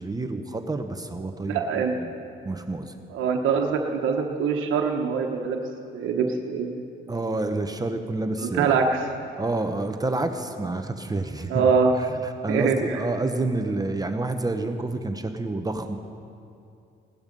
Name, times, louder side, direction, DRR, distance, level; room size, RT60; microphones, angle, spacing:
voice 1, 0.0-2.1 2.4-2.9 7.1-8.7 9.4-11.6 12.0-16.0, right 2 dB, 20° right, 6 dB, 0.9 m, -29 dB
voice 2, 1.5-2.0 3.1-5.6 5.9-6.8 8.4-9.0 11.5-11.9 12.5-13.0, right 5 dB, 90° right, 3 dB, 1.2 m, -24 dB
17.5 x 12.5 x 5.4 m, 2.6 s
cardioid pair, 90°, 20 cm